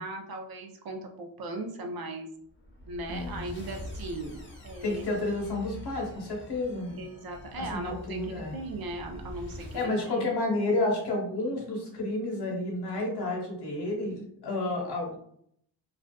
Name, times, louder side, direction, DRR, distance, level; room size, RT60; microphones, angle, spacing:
voice 1, 0.0-2.3 2.9-5.1 6.9-10.3, right 2 dB, 60° right, 3 dB, 0.6 m, -38 dB
sound 1, 2.5-9.9, left 1 dB, 25° left, 0.8 m, -44 dB
voice 2, 3.1-3.5 4.8-7.0 7.8-8.6 9.7-15.2, left 2 dB, 70° left, -1 dB, 1.0 m, -30 dB
2.4 x 2.3 x 2.2 m, 0.67 s
cardioid pair, 85°, 42 cm